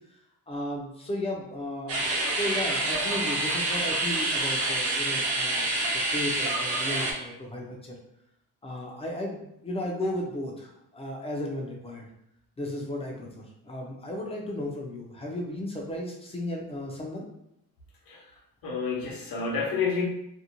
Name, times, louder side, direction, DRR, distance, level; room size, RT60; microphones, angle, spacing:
voice 1, 0.5-7.9 8.6-12.1 12.6-17.3, left 1 dB, 20° left, -1 dB, 0.4 m, -35 dB
sound 1, 1.9-7.1, right 2 dB, 45° right, 0.5 m, -27 dB
voice 2, 18.6-20.0, left 5 dB, 80° left, -1 dB, 0.7 m, -29 dB
2.5 x 2.1 x 2.8 m, 0.79 s
cardioid pair, 165°, 34 cm